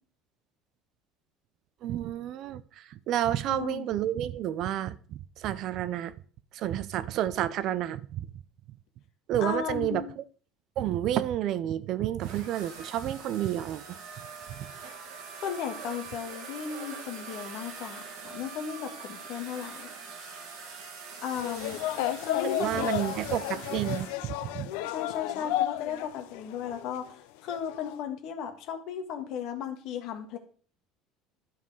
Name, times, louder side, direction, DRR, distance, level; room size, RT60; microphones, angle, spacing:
voice 1, 1.8-2.6 3.1-6.1 6.6-8.3 9.3-10.0 10.8-13.8 14.6-14.7 22.6-24.7, right 12 dB, 40° right, 0.5 m, -30 dB
voice 2, 3.5-3.9 9.4-10.0 15.4-19.9 21.2-21.8 22.2-23.2 24.9-30.4, left 8 dB, 45° left, 1.6 m, -35 dB
sound 1, 12.2-24.2, right 5 dB, 55° right, 2.2 m, -44 dB
sound 2, 21.3-26.1 26.3-27.1 27.5-28.0, left 13 dB, 75° left, 0.6 m, -32 dB
12.0 x 5.5 x 4.8 m
cardioid pair, 180°, 0 cm